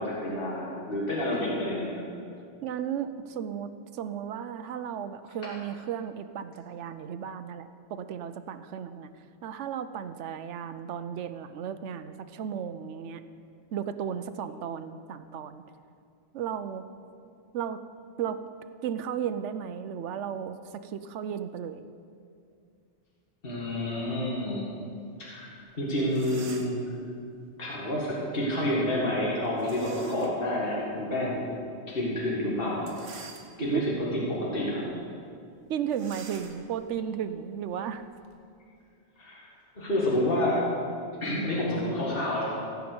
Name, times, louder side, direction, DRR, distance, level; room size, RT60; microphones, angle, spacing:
voice 1, 0.0-1.9 23.4-24.7 25.2-25.5 25.8-26.8 27.6-31.5 31.9-32.9 33.6-34.8 39.2-39.4 39.8-40.6 41.2-42.5, left 1 dB, 50° left, -5 dB, 2.1 m, -29 dB
voice 2, 2.6-9.1 9.4-13.2 13.7-15.6 16.3-16.9 17.5-17.8 18.2-18.4 18.8-21.8 33.7-33.8 35.7-38.0, right 8 dB, 85° right, 11 dB, 1.0 m, -34 dB
sound 1, 25.7-25.8 26.0-26.9 29.6-30.4 31.0-31.1 32.7-33.9 34.4-34.6 34.9-35.0 35.9-38.4, right 4 dB, 70° right, 1.3 m, -48 dB
16.0 x 5.8 x 7.8 m, 2.4 s
omnidirectional pair, 1.2 m